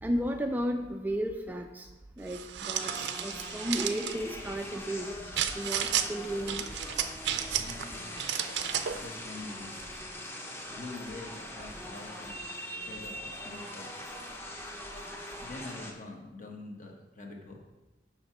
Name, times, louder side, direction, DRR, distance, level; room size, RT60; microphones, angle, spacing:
voice 1, 0.0-1.9 2.2-5.2 5.5-6.6, equal, 10° right, 4 dB, 0.3 m, -33 dB
sound 1, 2.3-4.2 5.4-6.1 6.5-7.8 8.2-9.0, right 9 dB, 75° right, 0.5 m, -32 dB
sound 2, 2.8-15.9, left 1 dB, 15° left, 0.8 m, -42 dB
voice 2, 7.5-8.1 8.9-9.8 10.7-12.4 12.8-13.9 15.4-17.6, left 2 dB, 45° left, 1 dB, 1.2 m, -45 dB
6.5 x 5.9 x 4.6 m, 1.1 s
head